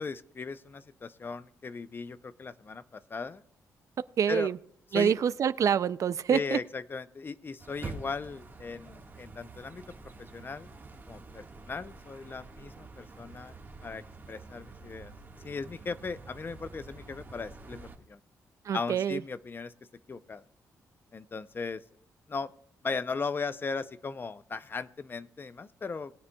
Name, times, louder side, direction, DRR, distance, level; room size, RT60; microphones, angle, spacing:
voice 1, 0.0-3.4 4.3-4.5 4.9-5.2 6.3-9.8 10.2-10.7 11.1-13.6 13.8-15.1 15.4-18.2 18.7-19.7 20.1-20.4 21.1-21.8 22.3-22.5 22.8-26.1, left 4 dB, 35° left, 14 dB, 0.6 m, -37 dB
voice 2, 4.2-4.6 4.9-6.6 18.6-19.2, right 8 dB, 60° right, 16 dB, 0.4 m, -26 dB
sound 1, 7.6-18.0, right 3 dB, 30° right, 1.6 m, -47 dB
20.0 x 9.5 x 2.3 m, 0.67 s
cardioid pair, 95°, 6 cm